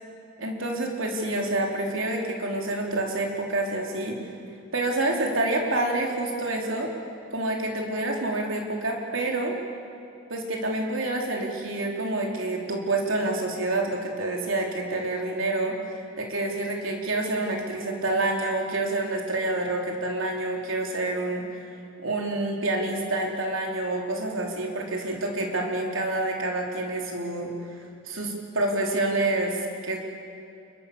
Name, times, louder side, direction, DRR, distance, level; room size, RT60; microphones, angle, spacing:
voice 1, 0.4-4.2 4.7-6.9 7.3-9.6 10.3-15.8 16.2-21.4 22.0-27.5 28.1-30.0, right 2 dB, 70° right, 0 dB, 4.1 m, -28 dB
28.5 x 23.0 x 7.1 m, 2.5 s
head